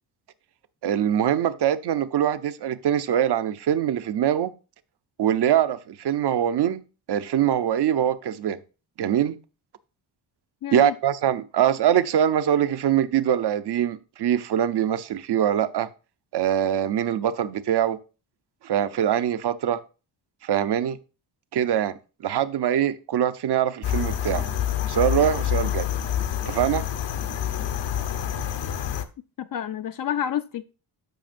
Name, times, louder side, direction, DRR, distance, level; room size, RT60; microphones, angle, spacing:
voice 1, 0.8-4.5 5.2-6.8 7.1-8.6 9.0-9.4 10.7-15.9 16.3-18.0 18.6-19.8 20.4-21.0 21.5-22.0 22.2-24.5 24.9-25.9 26.5-26.8, right 10 dB, 60° right, 0.7 m, -23 dB
voice 2, 10.6-11.0 29.4-30.6, left 10 dB, 50° left, 0.5 m, -29 dB
sound 1, 23.8-29.0, left 10 dB, 65° left, 0.9 m, -27 dB
12.5 x 5.1 x 2.6 m
cardioid pair, 85°, 46 cm